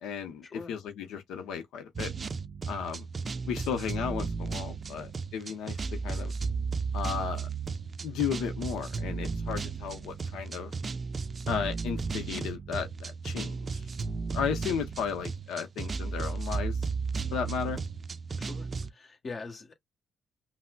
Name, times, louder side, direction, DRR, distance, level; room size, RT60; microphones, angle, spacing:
voice 1, 0.0-2.1 2.7-3.1 3.5-6.3 6.9-7.5 8.0-10.7 11.5-14.0 14.2-16.9 17.3-17.8, left 7 dB, 90° left, 0.6 m, -34 dB
sound 1, 2.0-18.9, right 4 dB, 40° right, 0.4 m, -34 dB
voice 2, 18.4-19.7, left 3 dB, 40° left, 1.2 m, -43 dB
5.6 x 2.0 x 2.2 m
cardioid pair, 90°, 0 cm